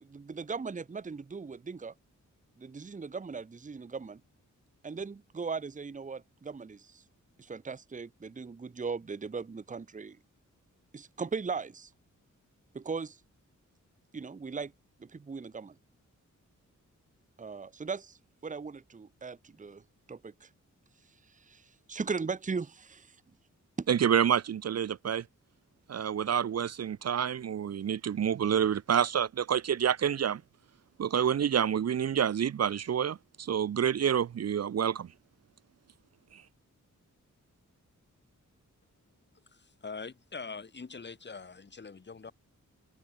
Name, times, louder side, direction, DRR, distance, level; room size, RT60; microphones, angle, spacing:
voice 1, 0.0-1.9 2.6-4.2 4.8-7.0 7.4-10.2 10.9-11.9 12.7-13.2 14.1-14.7 15.0-15.7 17.4-20.5 21.3-23.2 23.8-23.9, right 5 dB, 25° right, 0.9 m, -38 dB
voice 2, 23.9-25.2 25.9-30.4 31.0-35.1 36.3-36.4, right 8 dB, 55° right, 0.6 m, -28 dB
voice 3, 39.5-42.3, left 4 dB, 35° left, 2.7 m, -43 dB
open air
wide cardioid pair, 175°, 31 cm